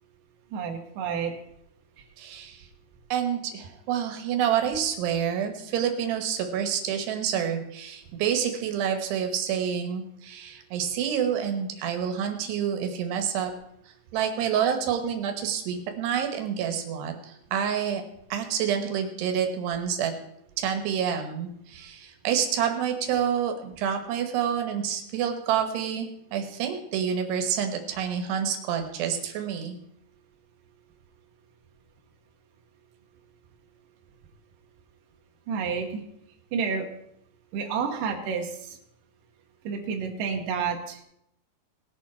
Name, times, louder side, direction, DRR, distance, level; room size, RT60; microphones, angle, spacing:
voice 1, 0.5-1.3 35.5-36.0 36.5-36.9 37.5-38.8 39.6-41.0, right 6 dB, 65° right, 2 dB, 2.6 m, -30 dB
voice 2, 2.2-2.7 3.1-13.5 14.1-18.0 18.3-20.1 20.6-29.8, right 8 dB, 80° right, 5 dB, 3.2 m, -28 dB
19.5 x 7.2 x 4.4 m, 0.77 s
omnidirectional pair, 4.7 m